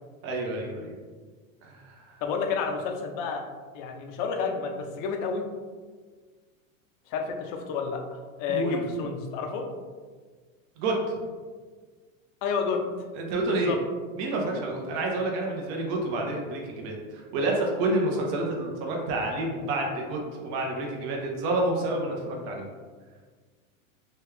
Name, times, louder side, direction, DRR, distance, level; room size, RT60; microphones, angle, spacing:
voice 1, 0.2-1.0 1.6-2.2 8.5-8.9 10.8-11.2 13.1-13.7 14.2-22.7, right 2 dB, 50° right, 0 dB, 0.8 m, -29 dB
voice 2, 2.2-3.4 3.7-5.5 7.1-9.7 12.4-12.8 13.5-13.8, left 5 dB, 45° left, 4 dB, 0.5 m, -30 dB
3.1 x 2.3 x 3.2 m, 1.5 s
supercardioid pair, 130°, 41 cm